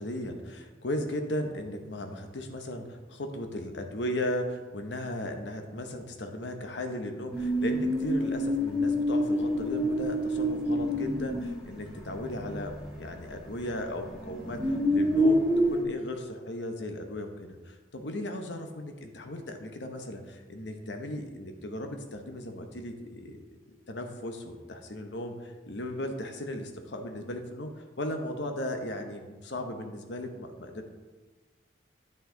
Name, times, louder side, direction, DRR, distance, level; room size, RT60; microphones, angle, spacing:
voice 1, 0.0-30.9, left 1 dB, 85° left, 5 dB, 0.9 m, -36 dB
sound 1, 7.3-13.5 13.8-15.8, equal, 5° right, 1.5 m, -28 dB
9.5 x 5.5 x 3.8 m, 1.3 s
head